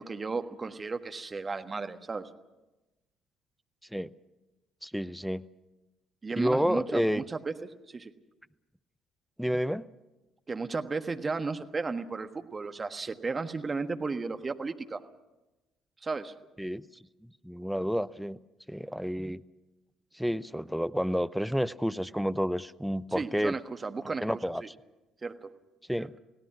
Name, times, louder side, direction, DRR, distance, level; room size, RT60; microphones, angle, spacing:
voice 1, 0.0-2.3 6.2-8.1 10.5-15.0 16.0-16.3 23.1-24.7 25.2-25.5 26.0-26.1, right 4 dB, 30° right, 8 dB, 1.4 m, -34 dB
voice 2, 4.8-5.4 6.4-7.2 9.4-9.9 16.6-16.8 17.4-18.4 18.7-19.4 20.1-23.6 24.2-24.6 25.9-26.1, equal, ahead, 14 dB, 0.6 m, -30 dB
29.5 x 17.5 x 6.0 m, 1.0 s
figure-of-eight pair, 50°, 0 cm